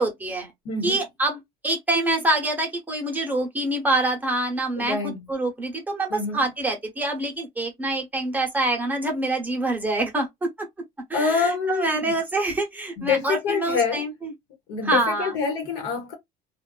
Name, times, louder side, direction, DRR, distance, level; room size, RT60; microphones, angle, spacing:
voice 1, 0.0-0.5 0.8-10.5 11.1-14.3 14.8-15.3, right 2 dB, 10° right, 0.8 m, -26 dB
voice 2, 0.6-1.0 4.7-5.2 6.1-6.4 11.1-12.2 13.0-14.1 14.7-16.1, left 5 dB, 85° left, 1.1 m, -26 dB
2.4 x 2.3 x 2.4 m
cardioid pair, 140°, 17 cm